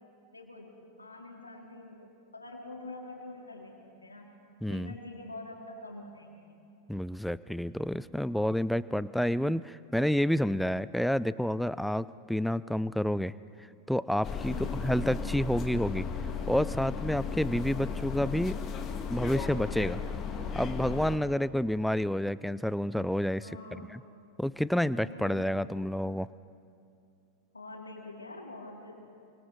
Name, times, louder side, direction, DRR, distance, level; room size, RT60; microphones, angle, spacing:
voice 1, 0.3-3.7 4.0-4.4 4.7-6.5 14.5-14.9 23.4-24.0 25.0-25.7 27.5-29.1, left 2 dB, 80° left, 0 dB, 3.5 m, -45 dB
voice 2, 4.6-4.9 6.9-13.3 13.9-14.6 14.8-16.1 16.5-18.6 19.1-20.0 20.5-23.5 23.9-24.0 24.4-26.3, equal, ahead, 18 dB, 0.4 m, -29 dB
sound 1, 14.2-21.2, left 5 dB, 25° left, 1.9 m, -35 dB
28.5 x 25.0 x 4.0 m, 2.5 s
figure-of-eight pair, 90°, 0 cm